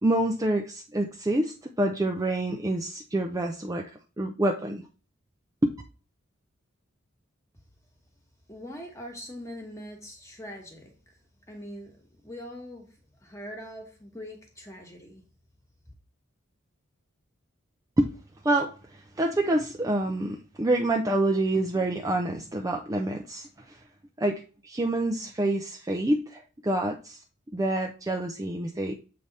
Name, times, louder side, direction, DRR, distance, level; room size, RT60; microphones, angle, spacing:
voice 1, 0.0-4.9 5.6-5.7 18.0-18.1 18.4-23.8 24.2-27.2 27.5-28.9, right 1 dB, 15° right, 0.4 m, -27 dB
voice 2, 8.5-11.2 11.5-15.2, equal, 15° left, 1.2 m, -42 dB
7.6 x 3.4 x 4.0 m
head